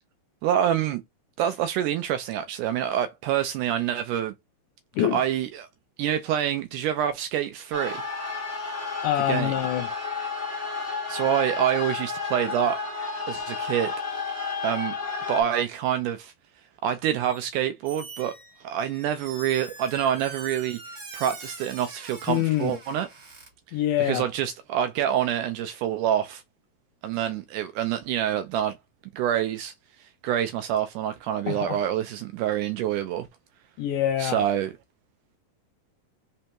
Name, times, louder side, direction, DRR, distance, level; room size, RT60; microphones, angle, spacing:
voice 1, 0.4-1.0 1.4-4.3 5.0-5.7 6.0-8.0 9.3-9.5 11.1-12.8 13.3-13.9 14.6-14.9 15.3-16.3 16.8-20.8 21.1-23.1 24.0-26.4 27.0-28.8 29.1-29.7 30.2-33.3 34.2-34.7, right 10 dB, 80° right, 1.9 m, -26 dB
sound 1, 7.7-15.4, left 4 dB, 35° left, 1.1 m, -31 dB
voice 2, 9.0-9.9 22.3-22.7 23.7-24.3 31.5-31.8 33.8-34.4, left 12 dB, 80° left, 1.8 m, -25 dB
Squeak, 17.2-17.5 17.8-23.5, right 4 dB, 35° right, 1.4 m, -43 dB
5.2 x 3.4 x 2.9 m
omnidirectional pair, 4.0 m